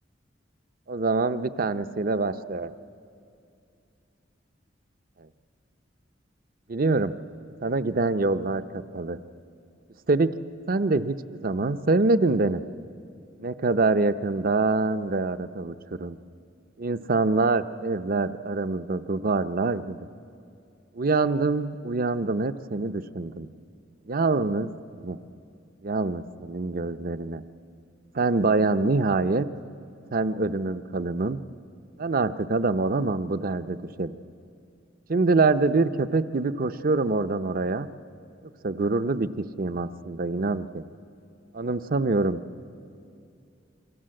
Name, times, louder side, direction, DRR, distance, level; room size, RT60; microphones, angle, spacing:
voice 1, 0.9-2.7 6.7-7.1 7.6-9.2 10.1-10.3 10.7-12.6 13.4-16.2 16.8-20.0 20.9-23.5 24.1-25.2 25.8-27.4 28.1-29.5 30.1-31.4 32.0-34.2 35.1-37.9 38.6-40.8 41.5-42.4, right 3 dB, 50° right, 12 dB, 0.7 m, -25 dB
27.5 x 24.5 x 7.7 m, 2.5 s
head